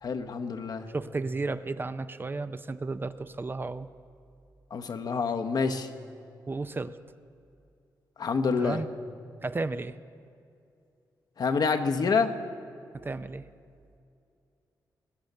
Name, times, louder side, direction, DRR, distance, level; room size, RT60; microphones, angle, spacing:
voice 1, 0.0-0.9 4.7-5.9 8.2-8.8 11.4-12.3, left 5 dB, 60° left, 6 dB, 0.9 m, -27 dB
voice 2, 0.9-3.9 6.5-7.0 8.6-8.9 9.4-9.9 13.0-13.5, right 3 dB, 25° right, 12 dB, 0.5 m, -33 dB
20.0 x 7.1 x 6.6 m, 2.5 s
cardioid pair, 75°, 8 cm